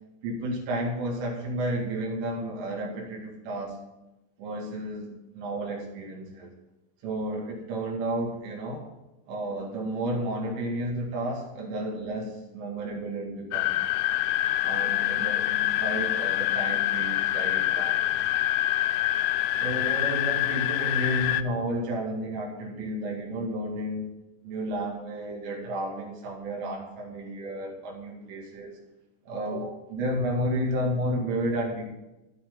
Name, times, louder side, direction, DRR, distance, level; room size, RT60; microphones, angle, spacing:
voice 1, 0.2-3.8 4.4-6.5 7.0-8.9 9.3-13.8 14.6-18.3 19.6-24.1 24.4-28.8 29.3-31.8, right 1 dB, 75° right, 0 dB, 4.8 m, -32 dB
sound 1, 13.5-21.4, left 14 dB, 85° left, 3.2 m, -26 dB
14.5 x 12.0 x 3.8 m, 1.0 s
omnidirectional pair, 5.8 m